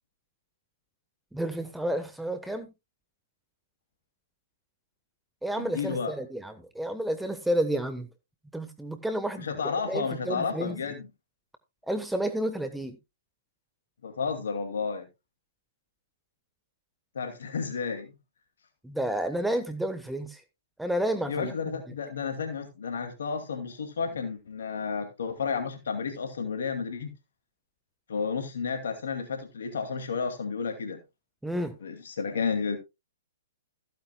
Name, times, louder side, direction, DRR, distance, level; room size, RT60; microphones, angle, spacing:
voice 1, 1.3-2.7 5.4-8.1 8.5-9.5 9.9-10.8 11.9-12.9 18.8-20.4 20.8-21.8 31.4-31.7, right 1 dB, 5° right, 1.2 m, -30 dB
voice 2, 5.6-6.1 9.4-11.1 14.0-15.1 17.1-18.1 21.3-27.1 28.1-31.0 31.8-32.8, left 5 dB, 70° left, 2.4 m, -32 dB
15.0 x 9.3 x 2.3 m
hypercardioid pair, 120°, 0 cm